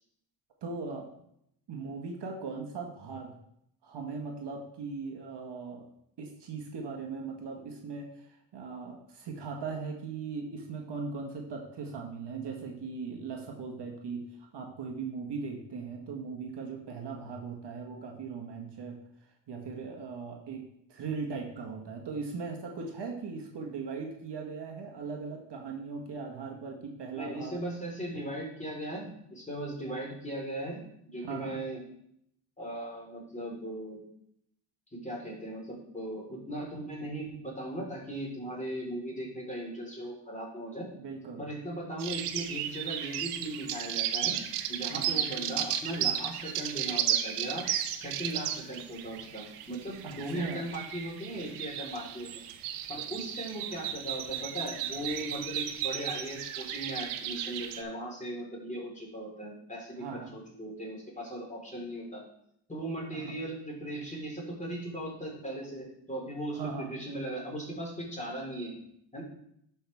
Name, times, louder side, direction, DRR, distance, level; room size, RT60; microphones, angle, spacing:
voice 1, 0.6-1.1 1.7-3.4 3.8-5.9 6.2-14.3 14.5-19.0 19.5-20.6 20.9-27.6 31.2-31.6 41.0-41.4 44.9-45.2 50.0-50.6 60.0-60.3 63.1-63.3 66.5-66.9, right 4 dB, 55° right, 2 dB, 1.7 m, -39 dB
voice 2, 27.1-30.8 31.0-31.8 32.6-34.0 34.9-40.9 41.4-44.4 44.7-47.7 48.0-52.3 52.9-62.2 62.7-68.7 69.1-69.2, right 1 dB, 15° left, -3 dB, 4.1 m, -38 dB
sound 1, 42.0-57.8, right 10 dB, 90° right, 0.9 m, -34 dB
11.5 x 6.0 x 3.5 m, 0.73 s
cardioid pair, 80°, 50 cm